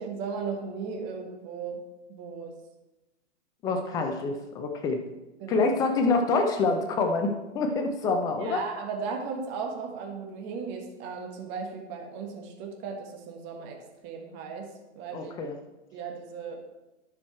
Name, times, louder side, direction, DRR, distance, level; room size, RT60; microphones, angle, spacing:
voice 1, 0.0-1.8 2.1-2.5 3.6-3.7 5.4-5.7 8.4-13.8 14.0-15.3 15.9-16.6, right 5 dB, 30° right, 3 dB, 1.5 m, -36 dB
voice 2, 3.6-5.0 5.5-8.6 15.1-15.5, left 3 dB, 10° left, 5 dB, 0.4 m, -26 dB
10.5 x 6.2 x 4.3 m, 1.0 s
hypercardioid pair, 130°, 35 cm